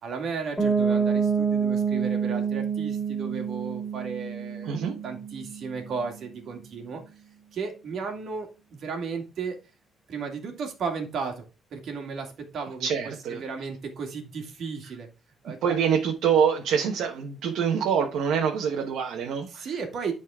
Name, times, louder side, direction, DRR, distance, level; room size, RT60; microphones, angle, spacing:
voice 1, 0.0-7.0 7.5-9.6 10.1-11.4 11.7-12.9 13.3-15.1 15.4-15.8 19.5-20.1, right 5 dB, 60° right, 2.3 m, -34 dB
Piano, 0.6-6.3, right 6 dB, 5° left, 3.1 m, -27 dB
voice 2, 4.6-5.0 12.8-13.4 15.6-19.7, right 7 dB, 90° right, 1.2 m, -25 dB
11.0 x 4.3 x 3.6 m
cardioid pair, 140°, 0 cm